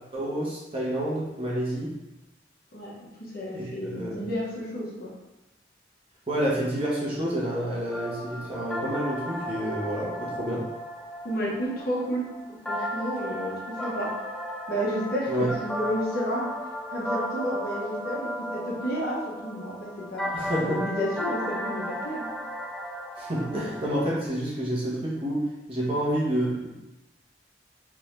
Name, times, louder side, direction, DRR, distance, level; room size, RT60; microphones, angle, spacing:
voice 1, 0.1-1.9 3.5-4.3 6.3-10.6 15.3-15.5 20.3-20.8 23.2-26.7, right 1 dB, 30° right, -6 dB, 1.3 m, -29 dB
voice 2, 3.3-5.1 11.2-14.1 14.7-16.5 16.9-20.3 20.6-22.3, equal, 55° left, -6 dB, 1.4 m, -31 dB
sound 1, 7.9-24.2, equal, 5° left, 0.6 m, -35 dB
3.8 x 3.6 x 3.3 m, 0.97 s
head